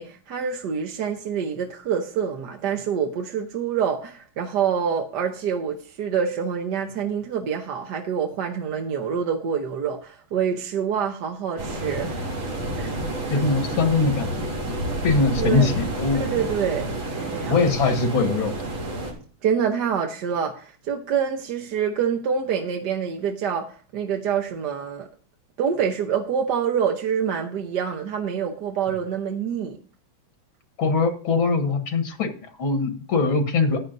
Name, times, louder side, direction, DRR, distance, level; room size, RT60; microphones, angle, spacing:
voice 1, 0.0-12.2 12.7-12.9 15.4-15.8 16.1-17.6 19.4-25.1 25.6-29.8, right 7 dB, 60° right, 1.4 m, -26 dB
sound 1, 11.6-19.1, right 1 dB, 85° right, 3.6 m, -29 dB
voice 2, 13.3-14.5 15.0-16.2 17.5-18.5 30.8-32.3 32.6-33.8, left 4 dB, 80° left, 2.2 m, -22 dB
14.5 x 9.6 x 2.6 m
omnidirectional pair, 2.2 m